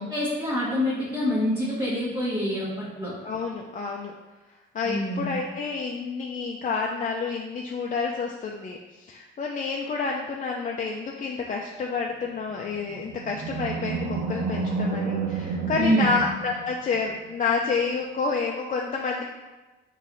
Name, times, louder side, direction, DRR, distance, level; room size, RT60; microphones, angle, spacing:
voice 1, 0.0-3.1 4.8-5.4 15.7-16.2, equal, 25° right, -10 dB, 1.3 m, -26 dB
voice 2, 3.2-4.1 4.7-19.2, left 4 dB, 40° left, -1 dB, 0.5 m, -29 dB
Animal, 12.6-17.2, right 4 dB, 85° right, 0.6 m, -30 dB
4.0 x 3.2 x 3.9 m, 1.2 s
cardioid pair, 90°, 20 cm